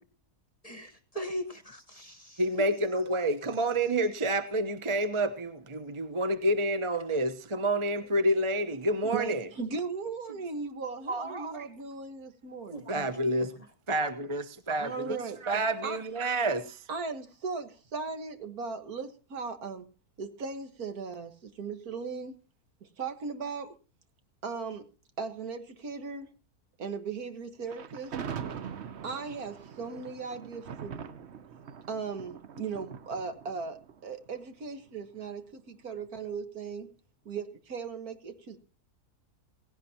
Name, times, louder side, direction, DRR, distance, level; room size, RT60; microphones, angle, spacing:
voice 1, 0.6-2.7 10.3-10.4 12.7-13.1 13.4-13.5, equal, 25° left, 1.3 m, -40 dB
voice 2, 2.4-9.5 11.1-11.7 12.9-13.5 13.9-15.2 15.4-16.8, right 1 dB, 25° right, 0.8 m, -29 dB
voice 3, 9.1-12.9 14.8-15.4 15.8-16.0 16.9-19.9 20.2-22.3 23.0-23.7 24.4-24.8 25.2-26.3 26.8-28.1 29.0-31.2 31.9-36.9 37.3-38.6, right 5 dB, 70° right, 2.0 m, -37 dB
Thunder, 27.7-34.9, right 7 dB, 50° right, 1.0 m, -42 dB
17.5 x 16.5 x 2.9 m
omnidirectional pair, 1.7 m